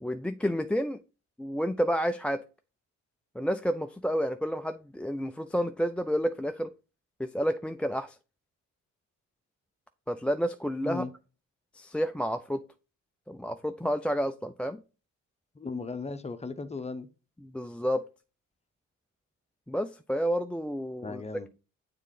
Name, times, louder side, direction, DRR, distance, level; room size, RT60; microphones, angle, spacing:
voice 1, 0.0-1.0 1.4-2.4 3.4-6.7 7.2-8.2 10.1-11.0 11.7-12.6 13.3-14.8 17.5-18.0 19.7-21.2, equal, 5° left, 0.3 m, -30 dB
voice 2, 15.5-17.1 21.0-21.5, left 4 dB, 20° left, 0.8 m, -36 dB
7.1 x 3.7 x 3.8 m
cardioid pair, 90°, 30 cm